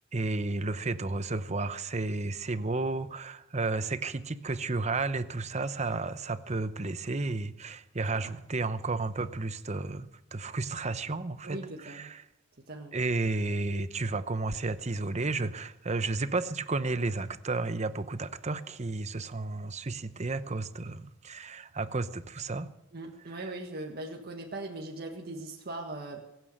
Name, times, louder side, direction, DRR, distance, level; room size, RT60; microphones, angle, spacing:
voice 1, 0.1-11.6 11.8-12.2 12.9-22.7, right 3 dB, 35° right, 12 dB, 0.9 m, -32 dB
voice 2, 11.4-12.1 12.7-12.9 22.9-26.2, right 2 dB, 50° right, 1 dB, 1.7 m, -40 dB
23.0 x 9.3 x 6.7 m, 0.93 s
head